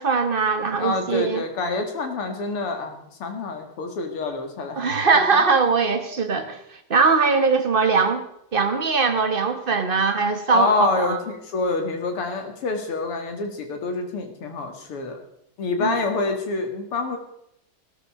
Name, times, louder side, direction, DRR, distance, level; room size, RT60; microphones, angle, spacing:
voice 1, 0.0-1.4 4.7-6.6 6.9-8.3 8.5-11.2 15.8-15.9, right 4 dB, 30° right, 7 dB, 1.1 m, -21 dB
voice 2, 0.8-4.8 10.5-15.2 15.6-17.2, left 3 dB, 80° left, 5 dB, 3.0 m, -27 dB
17.5 x 12.5 x 4.9 m, 0.74 s
omnidirectional pair, 2.4 m